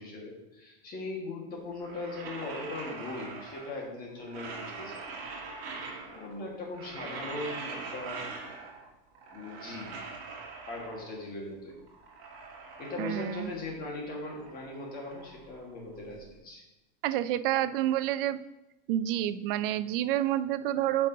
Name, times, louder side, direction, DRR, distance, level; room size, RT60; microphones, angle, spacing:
voice 1, 0.0-5.0 6.1-8.3 9.3-10.2 10.7-11.8 12.8-16.6, left 2 dB, 30° left, -1 dB, 1.7 m, -39 dB
sound 1, 1.7-3.9 4.2-6.3 6.6-8.9 9.1-11.2 11.7-13.7 14.0-16.2, right 4 dB, 45° right, 1.9 m, -43 dB
voice 2, 13.0-13.5 17.0-18.4 18.9-21.1, right 12 dB, 65° right, 14 dB, 0.5 m, -28 dB
8.9 x 5.4 x 2.8 m, 1.0 s
supercardioid pair, 155°, 30 cm